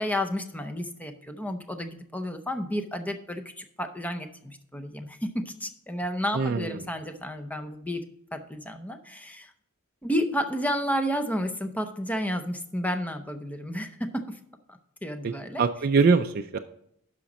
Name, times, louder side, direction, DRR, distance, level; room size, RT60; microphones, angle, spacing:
voice 1, 0.0-8.0 8.3-9.5 10.0-14.4 14.7-15.6, equal, 5° left, 8 dB, 0.7 m, -31 dB
voice 2, 6.3-6.9 15.2-15.3 15.6-16.6, right 4 dB, 45° right, 6 dB, 0.4 m, -23 dB
12.0 x 5.0 x 4.1 m, 0.71 s
head